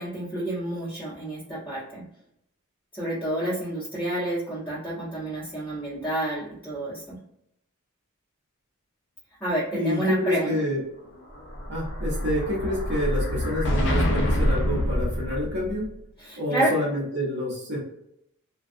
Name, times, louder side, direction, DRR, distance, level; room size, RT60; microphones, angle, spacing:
voice 1, 0.0-2.0 2.9-7.2 9.4-10.6 16.2-16.7, right 1 dB, 10° left, -11 dB, 0.9 m, -29 dB
voice 2, 9.7-10.8 11.7-15.9 16.4-17.8, left 1 dB, 50° right, -4 dB, 0.9 m, -28 dB
Explosion, 11.2-15.9, equal, 55° left, 0.5 m, -26 dB
2.3 x 2.3 x 2.6 m, 0.76 s
head